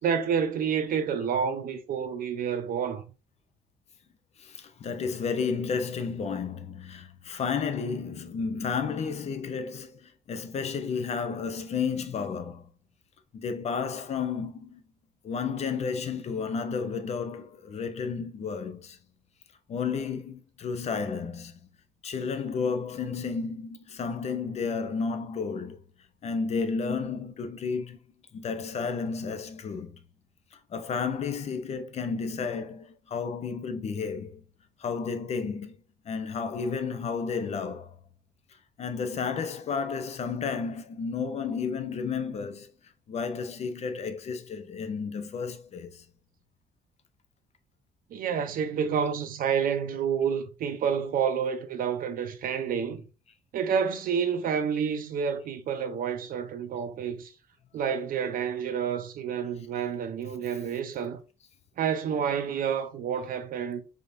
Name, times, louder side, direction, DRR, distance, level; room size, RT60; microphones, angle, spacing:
voice 1, 0.0-3.0 48.1-53.1 53.5-57.3 57.7-61.2 61.8-63.8, right 7 dB, 60° right, 0.6 m, -29 dB
voice 2, 4.4-12.7 13.3-14.8 15.2-19.0 19.7-21.5 22.0-25.8 26.2-28.0 28.3-30.0 30.5-34.4 34.8-35.8 36.1-38.0 38.8-42.7 43.1-46.0 59.6-59.7, left 5 dB, 40° left, 0.6 m, -32 dB
3.6 x 3.4 x 2.6 m
cardioid pair, 130°, 16 cm